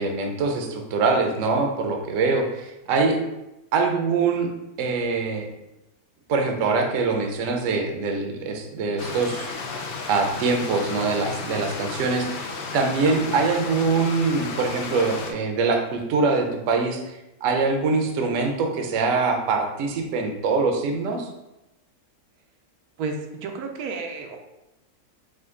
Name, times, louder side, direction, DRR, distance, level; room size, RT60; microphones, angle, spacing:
voice 1, 0.0-3.2 3.7-4.5 4.8-5.5 6.3-9.8 10.1-12.5 12.7-21.3, right 4 dB, 65° right, 4 dB, 0.9 m, -24 dB
Stream, 9.0-15.3, left 4 dB, 70° left, 0.5 m, -33 dB
voice 2, 23.0-24.4, right 4 dB, 85° right, 3 dB, 1.1 m, -31 dB
5.0 x 2.2 x 3.6 m, 0.93 s
omnidirectional pair, 1.6 m